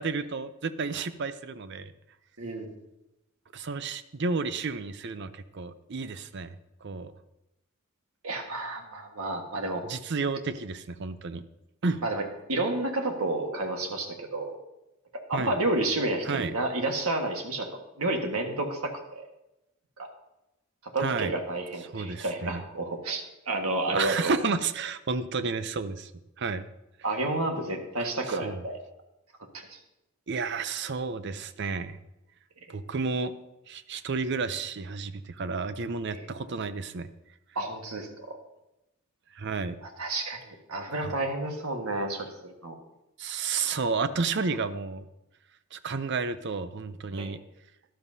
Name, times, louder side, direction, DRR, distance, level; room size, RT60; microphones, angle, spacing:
voice 1, 0.0-1.9 3.5-6.5 6.8-7.1 9.8-11.4 11.8-12.0 15.3-15.5 16.2-16.5 21.0-21.3 21.9-22.6 23.9-26.1 26.4-26.6 28.0-28.6 30.3-32.0 32.7-33.3 33.7-37.1 39.3-39.8 41.0-41.1 43.2-45.0 45.7-47.4, right 4 dB, 55° right, 12 dB, 0.6 m, -31 dB
voice 2, 2.4-2.7 8.2-9.8 12.0-12.2 12.5-14.6 15.3-17.7 18.0-19.2 20.0-20.1 20.9-24.4 27.0-28.8 29.5-29.8 36.1-36.2 37.5-38.4 40.0-40.4 40.7-42.7 47.2-47.3, right 2 dB, 80° right, 3 dB, 1.6 m, -30 dB
12.5 x 12.0 x 2.7 m, 0.91 s
head